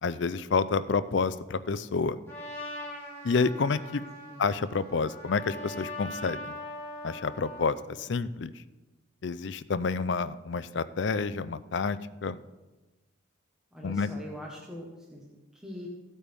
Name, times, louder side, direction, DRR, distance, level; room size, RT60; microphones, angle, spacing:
voice 1, 0.0-2.2 3.2-4.0 4.4-6.5 7.0-8.5 9.2-12.4 13.8-14.1, left 4 dB, 60° left, 14 dB, 0.4 m, -29 dB
Trumpet, 2.3-7.7, left 1 dB, 15° left, 2.9 m, -41 dB
voice 2, 13.7-15.9, equal, 5° right, -3 dB, 1.2 m, -43 dB
15.5 x 8.5 x 3.5 m, 1.1 s
head